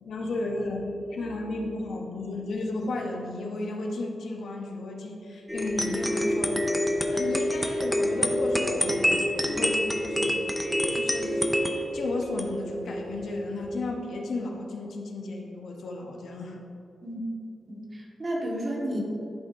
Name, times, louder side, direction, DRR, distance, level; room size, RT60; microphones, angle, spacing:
voice 1, 0.0-10.4 10.9-16.6, left 2 dB, 75° left, 0 dB, 1.0 m, -33 dB
sound 1, 5.5-13.8, equal, ahead, 0.5 m, -27 dB
voice 2, 17.6-19.0, right 1 dB, 25° right, -3 dB, 1.4 m, -32 dB
12.0 x 5.5 x 2.7 m, 2.8 s
wide cardioid pair, 175°, 0 cm